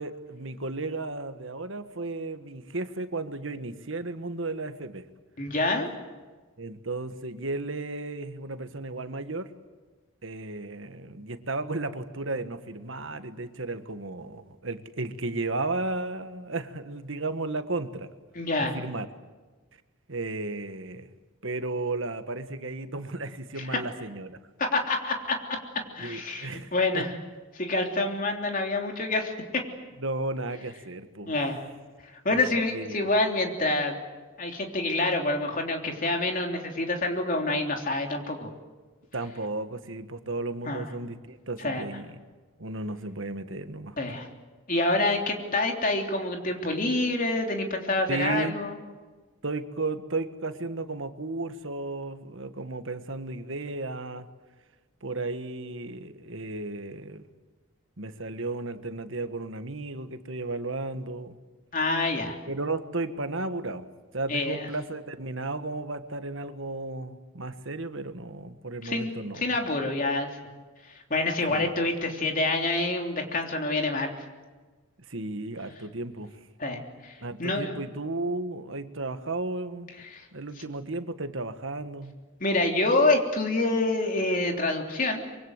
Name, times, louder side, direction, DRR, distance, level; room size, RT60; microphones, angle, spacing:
voice 1, 0.0-5.1 6.6-9.5 10.2-18.1 18.6-19.1 20.1-21.1 21.4-24.4 26.0-27.0 30.0-31.3 32.3-32.4 32.7-33.1 39.1-42.1 42.6-44.0 48.1-48.6 49.4-54.3 55.0-57.2 58.0-61.4 62.5-63.9 64.1-69.5 71.5-71.7 75.1-76.4 77.2-79.9 80.3-82.2, right 2 dB, 65° right, 9 dB, 1.6 m, -34 dB
voice 2, 5.4-5.9 18.3-18.8 23.6-23.8 24.6-25.4 25.9-27.1 27.5-29.6 31.2-31.6 32.2-33.9 34.4-38.5 40.6-40.9 41.6-41.8 44.0-44.3 44.7-48.8 61.7-62.4 64.3-64.7 68.8-70.3 71.1-74.1 76.6-77.7 80.1-80.2 82.4-85.2, left 2 dB, 40° left, 2 dB, 3.4 m, -27 dB
25.0 x 23.5 x 8.1 m, 1.3 s
head